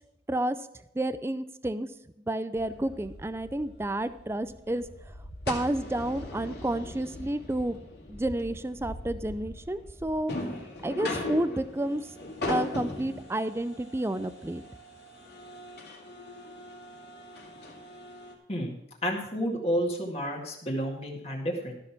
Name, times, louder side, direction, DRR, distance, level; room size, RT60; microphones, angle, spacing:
voice 1, 0.9-1.9 2.3-4.8 5.5-7.8 8.1-10.5 10.8-12.0 12.5-14.6, right 1 dB, 15° right, 13 dB, 0.4 m, -30 dB
sound 1, 2.5-18.3, left 2 dB, 65° left, 2.3 m, -39 dB
voice 2, 19.0-21.8, equal, 35° left, 0 dB, 2.0 m, -30 dB
13.5 x 6.4 x 5.9 m, 0.83 s
head